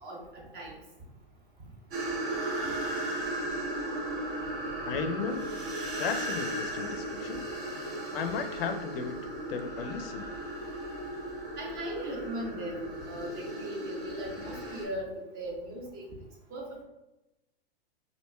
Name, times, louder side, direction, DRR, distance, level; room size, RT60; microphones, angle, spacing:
voice 1, 0.0-0.8 11.6-16.1 16.5-16.8, right 1 dB, 30° right, -1 dB, 0.8 m, -38 dB
sound 1, 1.9-14.8, right 1 dB, 55° right, 1.4 m, -36 dB
voice 2, 4.8-5.5 6.0-7.4 7.7-9.2 9.5-10.3, left 6 dB, 70° left, 6 dB, 0.5 m, -35 dB
4.3 x 2.6 x 2.2 m, 0.99 s
hypercardioid pair, 135°, 30 cm